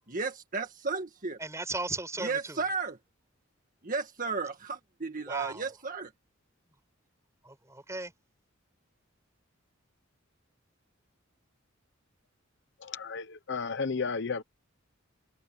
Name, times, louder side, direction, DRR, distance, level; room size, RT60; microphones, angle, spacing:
voice 1, 0.1-1.4 2.2-3.0 3.8-6.1, right 4 dB, 40° right, 1.8 m, -34 dB
voice 2, 1.4-2.6 5.3-5.7 7.4-8.1, right 2 dB, 15° right, 7.4 m, -36 dB
voice 3, 12.8-14.4, left 5 dB, 60° left, 0.8 m, -33 dB
head